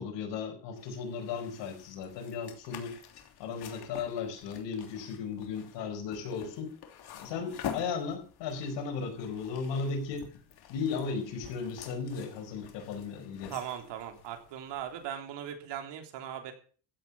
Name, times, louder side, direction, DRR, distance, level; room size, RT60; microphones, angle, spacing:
voice 1, 0.0-3.0 3.4-6.7 7.2-10.3 10.7-13.5, left 5 dB, 85° left, 4 dB, 4.8 m, -36 dB
sound 1, 0.8-15.1, left 8 dB, 60° left, 3.1 m, -47 dB
voice 2, 13.5-16.5, right 10 dB, 75° right, 6 dB, 3.3 m, -39 dB
15.0 x 7.5 x 7.2 m, 0.42 s
cardioid pair, 110°, 42 cm